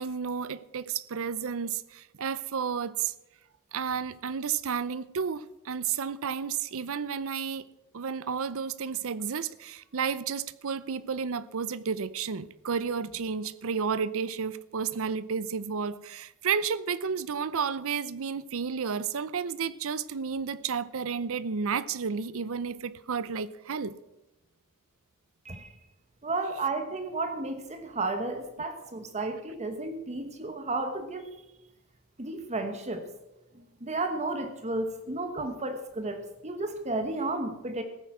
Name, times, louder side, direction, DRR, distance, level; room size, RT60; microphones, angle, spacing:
voice 1, 0.0-3.1 3.7-7.7 7.9-23.9, right 6 dB, 65° right, 0.6 m, -32 dB
voice 2, 26.2-31.3 32.2-33.1 33.8-37.8, right 2 dB, 30° right, 1.1 m, -33 dB
15.5 x 9.2 x 6.0 m
head